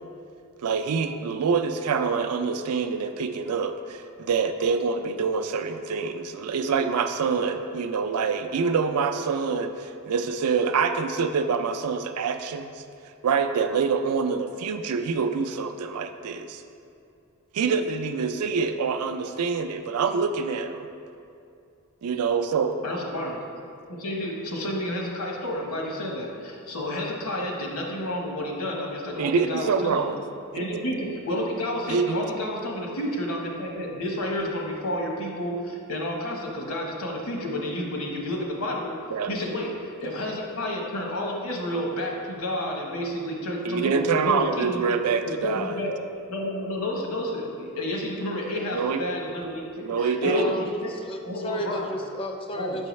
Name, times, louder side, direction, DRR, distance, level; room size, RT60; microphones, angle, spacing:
voice 1, 0.6-12.8 13.2-16.6 17.5-20.9 22.0-22.8 29.2-30.2 30.6-30.8 31.9-32.2 39.1-39.3 43.6-45.8 48.7-49.0 49.8-50.6, right 5 dB, 85° right, 8 dB, 0.4 m, -26 dB
voice 2, 22.8-23.4 23.9-30.1 30.5-38.9 39.3-44.8 45.2-45.9 46.3-50.9 51.2-51.8 52.5-52.8, left 1 dB, 70° left, 0 dB, 1.0 m, -30 dB
voice 3, 50.2-52.9, equal, 25° left, 4 dB, 0.4 m, -33 dB
6.3 x 5.5 x 3.1 m, 2.5 s
head